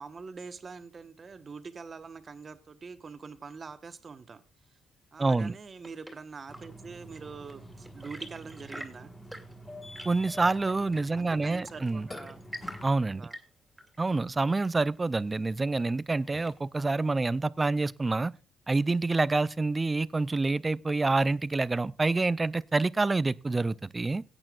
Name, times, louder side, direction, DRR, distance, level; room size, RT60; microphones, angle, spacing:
voice 1, 0.0-4.4 4.7-4.8 5.1-9.1 11.2-12.4 13.1-13.4, right 5 dB, 40° right, 1.1 m, -44 dB
voice 2, 5.2-5.5 10.0-12.1 12.8-13.3 14.0-18.3 18.7-24.2, right 3 dB, 20° right, 0.4 m, -27 dB
Chirp tweet / Engine / Tap, 5.8-16.9, right 1 dB, 5° right, 2.5 m, -49 dB
Burping eructation, 6.5-12.9, equal, 20° left, 1.4 m, -47 dB
17.5 x 8.8 x 2.4 m
cardioid pair, 90°, 0 cm